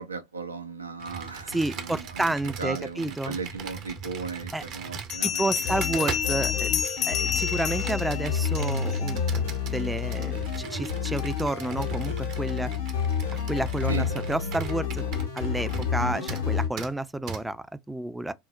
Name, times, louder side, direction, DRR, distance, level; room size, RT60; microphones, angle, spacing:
voice 1, 0.0-2.3 2.6-6.1 13.9-14.1, right 4 dB, 85° right, 0.4 m, -36 dB
Computer keyboard, 1.0-16.0 16.3-16.5 16.8-16.9 17.3-17.4, right 6 dB, 50° right, 0.7 m, -39 dB
voice 2, 1.5-3.4 4.5-4.6 5.2-12.7 13.5-15.1 15.3-18.3, right 1 dB, 5° right, 0.3 m, -30 dB
Bell, 3.9-4.0 5.1-9.0, left 7 dB, 50° left, 0.6 m, -30 dB
sound 1, 5.6-16.7, left 7 dB, 80° left, 0.8 m, -30 dB
3.7 x 2.0 x 2.2 m
figure-of-eight pair, 75°, 0 cm